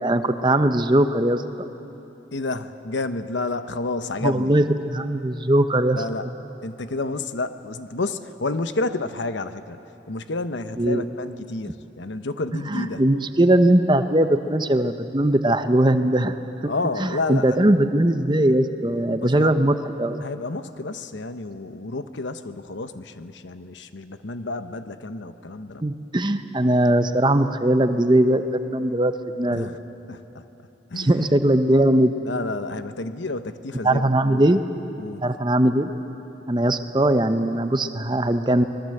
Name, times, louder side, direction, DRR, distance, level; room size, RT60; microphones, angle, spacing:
voice 1, 0.0-1.7 4.2-6.0 10.8-11.1 12.8-16.3 16.6-16.7 17.0-20.2 25.8-29.7 31.0-32.1 33.8-34.6 35.2-35.9 36.5-38.6, right 1 dB, 25° right, 9 dB, 0.8 m, -20 dB
voice 2, 2.3-4.5 5.9-6.3 6.6-9.8 10.1-13.0 16.7-17.6 19.2-19.6 20.2-25.8 29.5-29.8 30.1-30.4 30.9-31.3 32.2-34.6 35.0-35.2, left 3 dB, 90° left, 10 dB, 1.0 m, -30 dB
25.0 x 21.0 x 7.8 m, 3.0 s
head